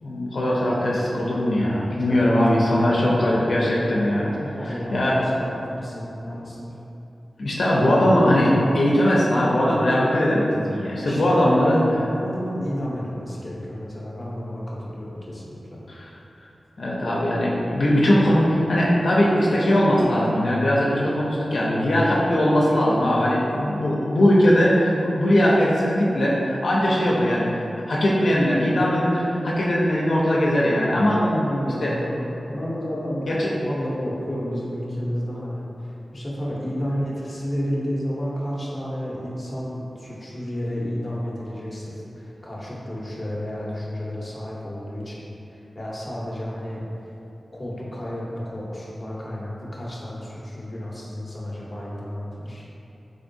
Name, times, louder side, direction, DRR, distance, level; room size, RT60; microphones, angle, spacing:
voice 1, 0.0-4.3 4.6-5.3 7.4-11.8 16.8-27.5 27.9-31.2 31.8-31.9 33.3-33.5, equal, 70° left, -6 dB, 0.5 m, -20 dB
voice 2, 4.4-6.8 11.0-11.4 11.7-15.8 31.1-46.8 47.5-52.6, equal, 25° left, -6 dB, 0.7 m, -31 dB
3.8 x 3.5 x 2.6 m, 3.0 s
wide cardioid pair, 90°, 0 cm